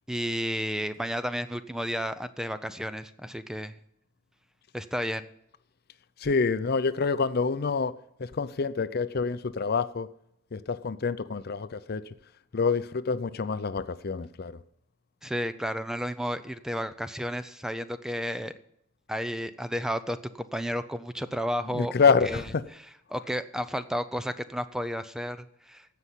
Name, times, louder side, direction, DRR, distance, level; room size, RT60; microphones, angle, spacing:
voice 1, 0.1-3.7 4.7-5.3 15.2-18.5 19.1-25.9, equal, 5° right, 0.5 m, -32 dB
voice 2, 6.2-7.9 8.4-10.1 10.5-12.0 12.5-14.5 21.7-22.6, left 5 dB, 50° left, 0.5 m, -26 dB
15.5 x 5.7 x 8.1 m
head